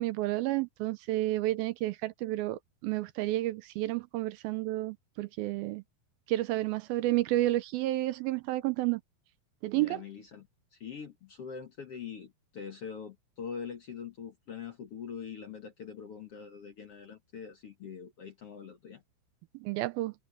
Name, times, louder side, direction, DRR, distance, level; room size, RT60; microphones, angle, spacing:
voice 1, 0.0-5.8 6.3-9.0 9.6-10.0 19.6-20.1, right 16 dB, 80° right, 2.4 m, -31 dB
voice 2, 9.7-10.5 10.7-19.0, left 6 dB, 55° left, 1.8 m, -43 dB
omnidirectional pair, 4.6 m